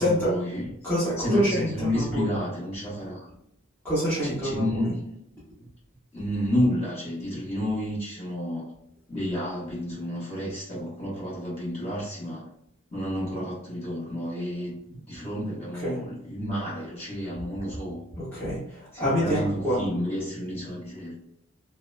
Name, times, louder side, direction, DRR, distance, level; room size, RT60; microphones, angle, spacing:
voice 1, 0.0-0.7 1.2-3.3 4.2-5.1 5.6-5.7 6.1-8.7 9.1-12.5 12.9-18.0 18.9-21.1, equal, 30° left, -7 dB, 1.1 m, -30 dB
voice 2, 0.8-2.3 3.8-4.9 15.8-16.0 18.1-19.8, equal, 10° left, -13 dB, 0.8 m, -26 dB
2.7 x 2.1 x 2.2 m, 0.79 s
head